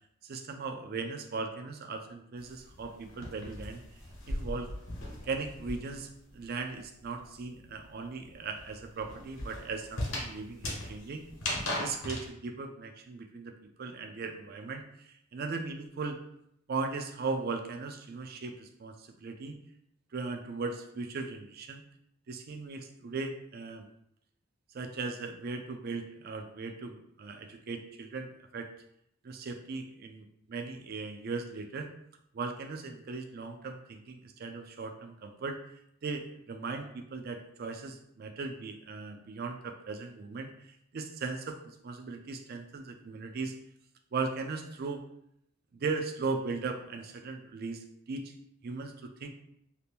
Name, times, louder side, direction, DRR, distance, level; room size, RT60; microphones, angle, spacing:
voice 1, 0.2-3.8 4.3-4.7 5.2-11.2 11.8-16.2 16.7-19.5 20.1-21.8 22.3-23.9 24.7-28.7 29.2-31.9 32.3-35.6 36.0-43.5 44.1-45.0 45.8-48.4 48.6-49.3, right 4 dB, 45° right, 5 dB, 0.4 m, -38 dB
sound 1, 2.4-6.1 6.4-12.3, left 1 dB, 80° left, 0.9 m, -38 dB
2.8 x 2.5 x 3.4 m, 0.74 s
head